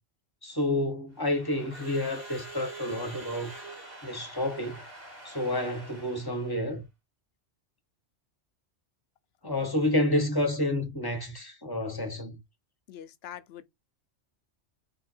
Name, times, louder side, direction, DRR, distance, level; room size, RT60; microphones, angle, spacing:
voice 1, 0.4-3.5 4.0-4.8 5.2-6.9 9.4-12.4, left 1 dB, 20° left, 0.8 m, -29 dB
Crowd / Alarm, 1.1-6.7, right 2 dB, 65° right, 2.5 m, -45 dB
voice 2, 9.6-10.0 12.9-13.6, left 10 dB, 65° left, 0.8 m, -44 dB
3.7 x 2.7 x 4.3 m
omnidirectional pair, 1.2 m